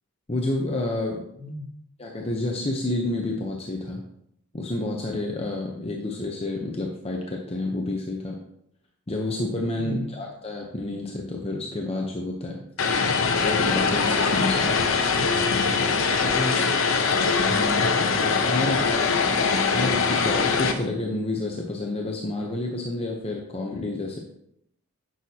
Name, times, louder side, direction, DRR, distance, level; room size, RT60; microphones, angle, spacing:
voice 1, 0.3-1.2 2.0-4.0 4.5-8.4 9.1-12.6 13.4-14.8 17.5-17.9 18.5-19.0 19.7-24.2, left 2 dB, 25° left, 0 dB, 0.7 m, -29 dB
voice 2, 1.4-1.7 9.8-10.1 16.2-16.8 18.2-18.5 19.0-19.3, left 2 dB, 5° right, -2 dB, 1.6 m, -34 dB
Vehicle, 12.8-20.7, left 5 dB, 60° left, 0.8 m, -22 dB
9.9 x 6.3 x 2.8 m, 0.76 s
head